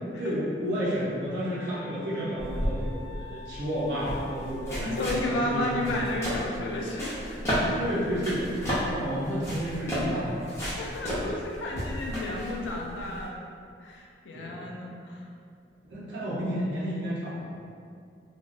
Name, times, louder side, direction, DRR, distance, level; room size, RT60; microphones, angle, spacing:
voice 1, 0.2-5.9 7.7-10.5 14.3-14.6 15.8-17.5, equal, 75° right, -8 dB, 0.5 m, -31 dB
sound 1, 1.4-5.0, left 6 dB, 5° right, 1.0 m, -47 dB
sound 2, 2.4-13.3, equal, 15° left, 0.6 m, -33 dB
voice 2, 4.8-7.4 10.6-13.4 13.8-15.3, left 1 dB, 80° left, -1 dB, 0.4 m, -32 dB
2.6 x 2.0 x 2.3 m, 2.4 s
head